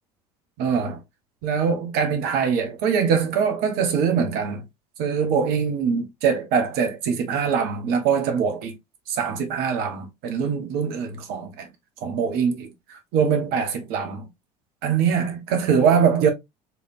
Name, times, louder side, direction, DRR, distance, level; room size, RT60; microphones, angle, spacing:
voice 1, 0.6-1.0 1.4-4.6 5.0-8.7 9.1-11.7 12.0-12.7 13.1-14.3 14.8-16.3, right 6 dB, 50° right, 1.2 m, -23 dB
4.4 x 3.5 x 2.6 m
figure-of-eight pair, 65°, 20 cm